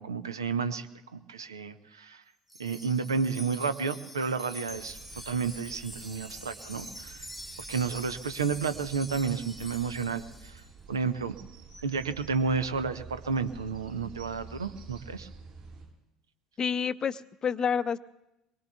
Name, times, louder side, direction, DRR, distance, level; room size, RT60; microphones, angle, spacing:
voice 1, 0.0-2.2 2.6-7.3 7.7-10.6 10.9-11.4 11.8-15.3, right 5 dB, 80° right, 11 dB, 0.8 m, -31 dB
Wind chime, 2.5-10.7, equal, 5° right, 1.5 m, -45 dB
sound 1, 4.7-15.9, right 5 dB, 50° right, 7.9 m, -49 dB
voice 2, 16.6-18.0, left 7 dB, 30° left, 15 dB, 0.6 m, -29 dB
24.5 x 22.5 x 2.4 m, 0.93 s
figure-of-eight pair, 65°, 2 cm